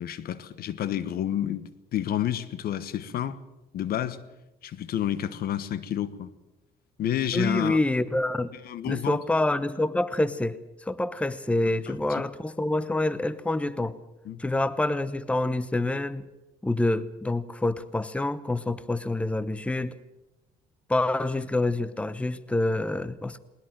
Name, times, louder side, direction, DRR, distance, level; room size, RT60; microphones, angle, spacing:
voice 1, 0.0-3.4 3.7-4.2 4.6-6.3 7.0-7.8 8.5-9.2 11.9-12.2 14.2-14.4, left 11 dB, 65° left, 1.3 m, -30 dB
voice 2, 7.3-8.5 8.8-14.0 14.4-16.2 16.6-19.9 20.9-23.4, left 2 dB, 5° left, 0.9 m, -27 dB
20.5 x 20.0 x 7.6 m
cardioid pair, 110°, 17 cm